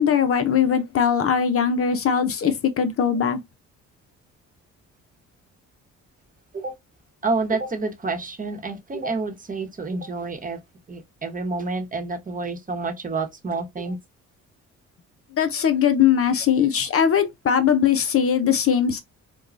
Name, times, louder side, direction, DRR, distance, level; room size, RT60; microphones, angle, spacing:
voice 1, 0.0-3.4 15.4-19.0, left 8 dB, 50° left, 0.7 m, -20 dB
voice 2, 7.2-10.6 10.9-14.0 16.5-16.7, right 3 dB, 25° right, 1.0 m, -28 dB
4.5 x 2.2 x 2.5 m
cardioid pair, 90°, 30 cm